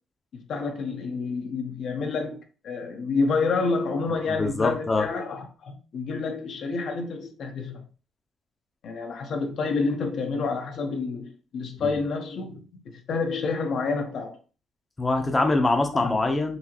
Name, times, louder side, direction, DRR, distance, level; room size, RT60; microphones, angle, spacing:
voice 1, 0.3-7.9 8.8-14.4 16.0-16.1, left 4 dB, 65° left, 0.7 m, -29 dB
voice 2, 4.3-5.0 11.8-11.9 15.0-16.6, left 2 dB, 20° left, 0.7 m, -24 dB
4.0 x 2.7 x 2.9 m
cardioid pair, 90°, 0 cm